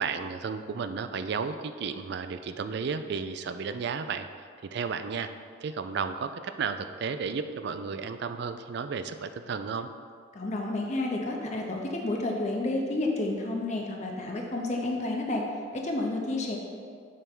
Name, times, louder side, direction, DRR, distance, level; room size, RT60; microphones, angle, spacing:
voice 1, 0.0-5.3 5.6-9.9, right 5 dB, 55° right, 10 dB, 0.4 m, -33 dB
voice 2, 10.3-15.4 15.7-16.6, left 2 dB, 35° left, 0 dB, 0.7 m, -30 dB
7.3 x 3.5 x 5.9 m, 2.2 s
head